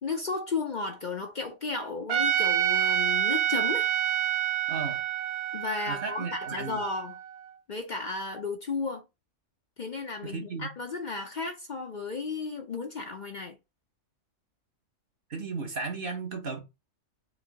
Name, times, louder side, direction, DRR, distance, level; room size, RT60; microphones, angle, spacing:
voice 1, 0.0-3.9 5.5-7.2 7.7-9.0 9.8-13.6, left 4 dB, 50° left, 0.7 m, -34 dB
Trumpet, 2.1-7.3, right 11 dB, 65° right, 0.9 m, -28 dB
voice 2, 4.7-5.0 5.9-6.8 10.2-10.7 15.3-16.6, right 4 dB, 50° right, 1.3 m, -35 dB
4.9 x 2.7 x 4.0 m
omnidirectional pair, 1.2 m